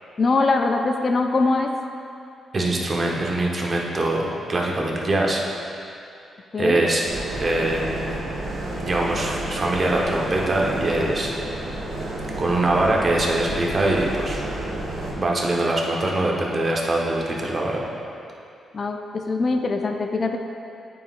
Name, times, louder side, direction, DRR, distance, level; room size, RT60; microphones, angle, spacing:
voice 1, 0.2-1.7 6.5-6.8 18.7-20.4, left 3 dB, 40° left, 4 dB, 0.4 m, -22 dB
voice 2, 2.5-5.4 6.6-7.0 7.4-8.1 8.8-11.3 12.4-14.4 15.2-17.8, right 2 dB, 35° right, -2 dB, 0.9 m, -23 dB
sound 1, 7.1-15.1, right 1 dB, 85° right, 1.3 m, -31 dB
9.2 x 5.5 x 2.4 m, 2.6 s
cardioid pair, 115°, 0 cm